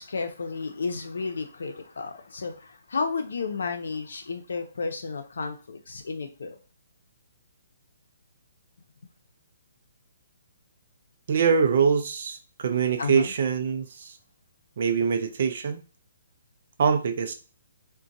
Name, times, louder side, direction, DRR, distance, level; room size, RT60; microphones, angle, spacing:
voice 1, 0.0-6.6 13.0-13.3, left 4 dB, 75° left, 6 dB, 0.6 m, -32 dB
voice 2, 11.3-14.2 14.8-15.8 16.8-17.3, right 6 dB, 40° right, 7 dB, 0.4 m, -24 dB
2.4 x 2.2 x 3.9 m, 0.34 s
hypercardioid pair, 175°, 0 cm